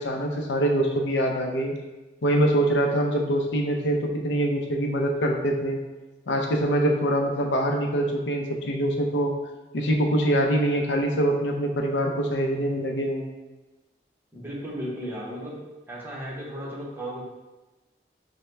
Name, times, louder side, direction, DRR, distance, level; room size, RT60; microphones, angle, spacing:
voice 1, 0.0-1.7 2.2-5.8 6.3-9.3 9.7-13.3, right 1 dB, 85° left, 2 dB, 0.5 m, -24 dB
voice 2, 14.3-17.2, equal, 10° right, -5 dB, 0.8 m, -35 dB
5.5 x 2.1 x 3.2 m, 1.1 s
head